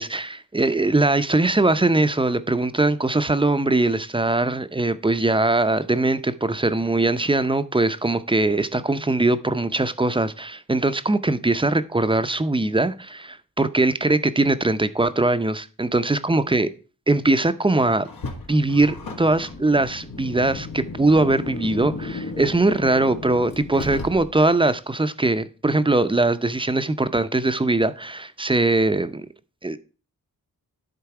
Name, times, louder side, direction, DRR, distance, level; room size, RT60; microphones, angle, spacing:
voice 1, 0.0-16.7 17.1-18.1 18.5-29.3 29.6-29.8, right 2 dB, 15° right, 0.6 m, -21 dB
Car, 18.1-24.6, left 3 dB, 80° left, 1.8 m, -34 dB
10.5 x 4.0 x 4.8 m
cardioid pair, 70°, 35 cm